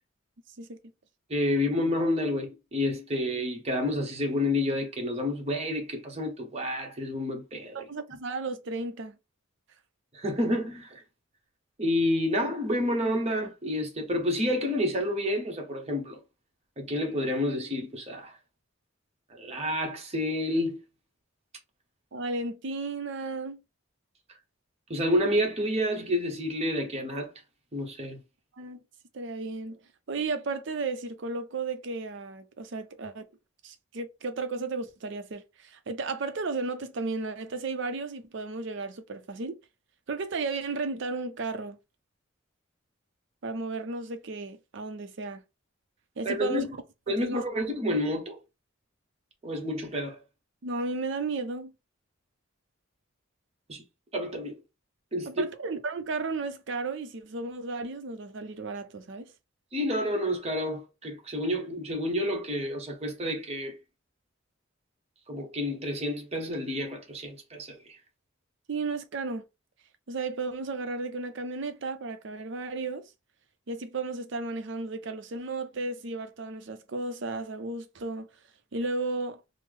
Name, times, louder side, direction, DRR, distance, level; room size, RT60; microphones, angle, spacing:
voice 1, 1.3-7.8 10.1-11.0 11.8-16.2 16.8-18.4 19.3-20.8 24.9-27.3 27.7-28.2 46.2-46.7 47.1-48.4 49.4-50.2 53.7-53.8 54.1-54.6 55.1-55.3 59.7-63.8 65.3-68.0, left 1 dB, 30° right, 0.9 m, -29 dB
voice 2, 7.7-9.2 22.1-23.6 28.5-28.8 29.1-29.8 30.1-33.3 33.6-39.6 40.1-41.8 43.4-45.4 46.2-46.7 47.2-47.4 50.6-51.7 55.3-59.3 68.7-69.4 70.1-73.1 73.7-78.3 78.7-79.4, right 3 dB, 60° right, 0.5 m, -34 dB
3.3 x 2.0 x 3.5 m
head